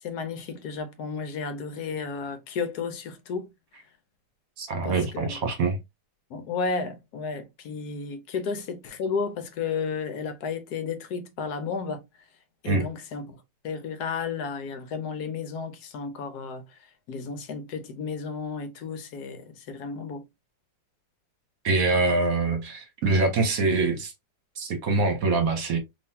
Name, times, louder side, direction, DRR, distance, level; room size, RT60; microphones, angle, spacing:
voice 1, 0.0-3.5 4.8-5.4 6.3-12.0 12.6-13.4 13.6-16.8 17.1-20.2, left 5 dB, 70° left, 1.1 m, -33 dB
voice 2, 4.6-5.8 12.6-12.9 21.6-24.1 24.6-25.8, right 3 dB, 60° right, 1.3 m, -24 dB
3.7 x 2.9 x 2.7 m
omnidirectional pair, 1.9 m